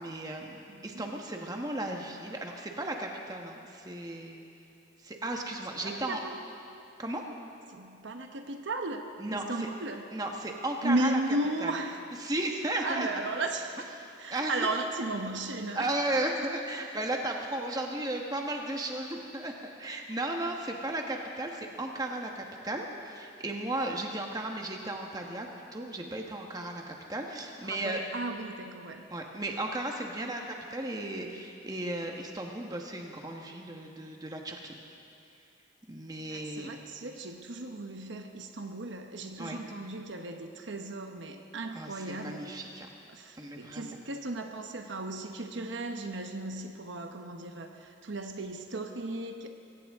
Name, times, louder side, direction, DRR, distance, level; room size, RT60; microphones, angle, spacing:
voice 1, 0.0-4.4 5.0-6.2 7.0-7.2 9.2-9.7 10.1-11.2 11.6-11.7 12.2-13.1 14.0-14.5 15.7-19.5 19.8-28.0 29.1-34.7 35.9-36.7 39.4-39.6 41.7-42.9 43.4-44.0, right 1 dB, 20° right, 1 dB, 1.2 m, -35 dB
voice 2, 0.7-1.1 5.8-6.4 7.7-10.1 10.8-12.0 12.8-13.8 14.2-15.9 27.6-29.0 36.3-42.5 43.1-49.5, right 2 dB, 70° right, 5 dB, 1.0 m, -35 dB
23.0 x 17.0 x 3.6 m, 2.6 s
head